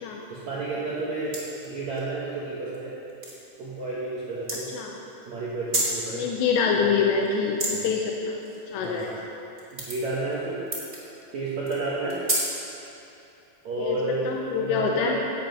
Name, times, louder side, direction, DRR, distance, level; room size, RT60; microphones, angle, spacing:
voice 1, 0.3-1.4 1.6-2.9 3.6-4.7 5.2-6.3 7.7-7.9 8.8-9.2 9.7-10.6 11.3-12.2 13.6-14.3 14.6-15.2, right 3 dB, 75° right, -7 dB, 1.7 m, -31 dB
sound 1, 1.3-2.0 2.6-2.8 3.1-3.4 4.4-4.5 5.5-6.0 7.2-7.8 8.1-9.2 9.6-10.3 10.7-11.0 11.6-12.9, right 1 dB, 30° right, 1.2 m, -29 dB
voice 2, 6.1-8.3 8.7-9.1 13.8-14.0 14.2-15.2, left 6 dB, 80° left, 0 dB, 2.8 m, -25 dB
16.5 x 7.8 x 5.5 m, 2.8 s
omnidirectional pair, 5.4 m